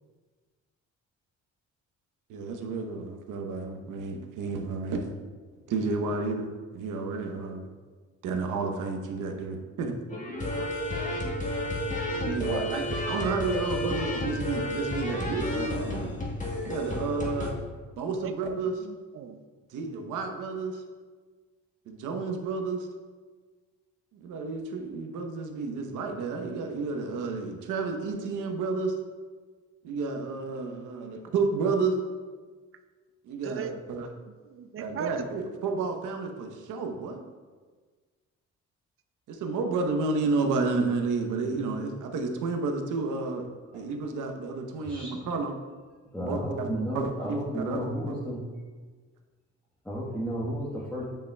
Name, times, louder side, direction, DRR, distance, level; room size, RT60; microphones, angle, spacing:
voice 1, 2.3-5.1 5.7-7.6 8.2-9.9 12.2-16.1 16.7-17.5 18.0-18.9 19.7-20.8 21.9-22.9 24.1-29.0 29.8-32.0 33.2-34.1 34.8-37.2 39.3-43.5 43.7-45.5 46.2-46.7 46.9-48.2, right 4 dB, 85° right, 4 dB, 0.9 m, -31 dB
sound 1, 10.1-17.5, left 1 dB, 25° left, 1.4 m, -31 dB
voice 2, 18.8-19.4 33.4-33.8 34.2-35.2, right 8 dB, 45° right, 9 dB, 0.5 m, -38 dB
voice 3, 46.1-48.4 49.8-51.0, equal, 5° left, -7 dB, 1.2 m, -33 dB
8.8 x 5.4 x 2.2 m, 1.4 s
cardioid pair, 90°, 30 cm